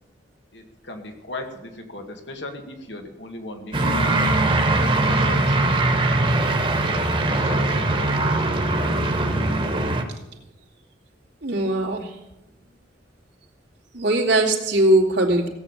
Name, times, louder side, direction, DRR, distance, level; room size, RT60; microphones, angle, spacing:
voice 1, 0.5-4.3 5.0-5.6 6.1-8.3, left 2 dB, 85° left, 4 dB, 2.1 m, -38 dB
sound 1, 3.7-10.0, right 2 dB, 30° right, 1.4 m, -21 dB
voice 2, 11.4-12.1 13.9-15.5, right 1 dB, 85° right, -1 dB, 2.6 m, -20 dB
17.0 x 8.1 x 7.2 m, 0.96 s
head